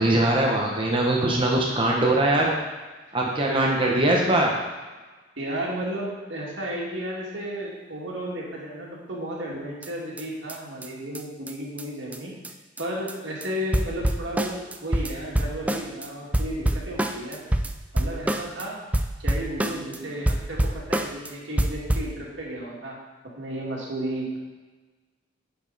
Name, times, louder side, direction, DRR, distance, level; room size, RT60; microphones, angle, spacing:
voice 1, 0.0-2.5 3.1-4.5, right 1 dB, 25° right, -2 dB, 1.0 m, -21 dB
voice 2, 3.0-3.9 5.4-12.3 12.8-17.4 17.9-18.8 19.2-23.0 23.4-24.4, right 1 dB, 75° right, -4 dB, 2.2 m, -33 dB
sound 1, 9.8-9.9 10.2-10.3 10.5-10.6 10.8-10.9 11.1-11.2 11.5-11.6 11.8-11.9 12.1-12.2 12.4-12.5 12.8-13.1 13.4-13.5 13.7-16.1 16.3-18.7 18.9-20.0 20.3-21.3 21.6-22.1, right 1 dB, 10° right, 0.3 m, -26 dB
9.6 x 5.2 x 4.1 m, 1.3 s
head